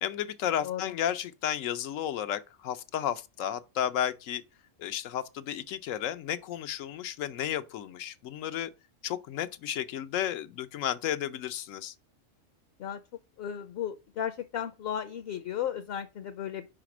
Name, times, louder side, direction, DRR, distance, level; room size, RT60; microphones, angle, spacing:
voice 1, 0.0-4.4 4.8-8.7 9.0-11.9, left 10 dB, 90° left, 1.0 m, -33 dB
voice 2, 0.6-0.9 12.8-13.0 13.4-16.7, left 9 dB, 60° left, 0.7 m, -35 dB
5.0 x 5.0 x 5.9 m
omnidirectional pair, 1.3 m